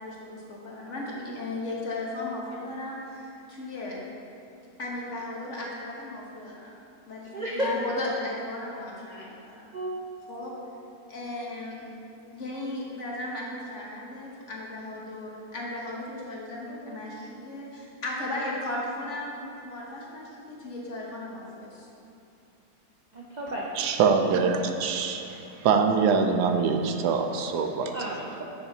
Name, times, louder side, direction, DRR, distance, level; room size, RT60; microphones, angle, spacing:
voice 1, 0.0-4.0 4.8-6.7 7.1-9.6 10.3-10.5 11.1-11.9 12.3-21.9, left 2 dB, 50° left, -3 dB, 1.4 m, -36 dB
voice 2, 7.3-7.7 9.2-9.3 9.7-9.9 16.7-16.9 17.3-17.4 23.1-23.7 27.9-28.4, right 1 dB, 60° right, -4 dB, 0.4 m, -33 dB
voice 3, 23.8-28.0, right 5 dB, 80° right, 5 dB, 1.2 m, -24 dB
10.5 x 6.8 x 2.8 m, 2.7 s
omnidirectional pair, 1.8 m